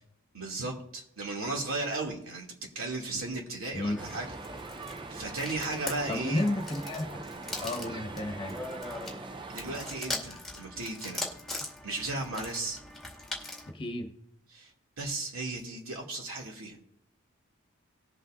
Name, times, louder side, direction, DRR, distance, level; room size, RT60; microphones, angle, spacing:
voice 1, 0.3-2.5 2.7-4.3 5.1-6.5 9.5-11.3 11.8-12.8 14.5-16.8, right 2 dB, 80° right, 0 dB, 2.5 m, -35 dB
sound 1, 3.8-13.7, left 2 dB, ahead, 2.0 m, -41 dB
sound 2, 4.0-10.0, right 3 dB, 25° right, 0.4 m, -42 dB
voice 2, 6.1-7.3 7.6-8.6 13.7-14.1, left 1 dB, 25° left, 3 dB, 1.3 m, -32 dB
19.0 x 7.7 x 2.6 m, 0.73 s
head